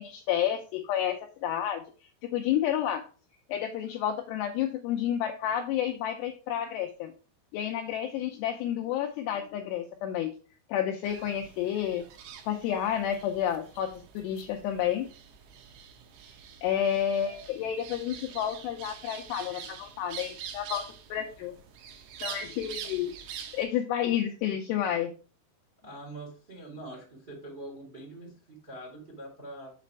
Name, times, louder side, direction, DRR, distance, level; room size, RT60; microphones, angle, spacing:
voice 1, 0.0-1.8 2.2-3.0 3.5-7.1 7.5-10.3 10.7-12.0 12.5-15.1 16.6-20.8 21.1-21.5 22.2-23.1 23.5-25.1, left 10 dB, 85° left, 4 dB, 2.4 m, -30 dB
sound 1, 11.0-23.7, right 8 dB, 80° right, 3.1 m, -45 dB
voice 2, 25.8-29.7, right 1 dB, 20° right, -3 dB, 1.5 m, -44 dB
7.5 x 4.2 x 4.5 m, 0.36 s
omnidirectional pair, 5.5 m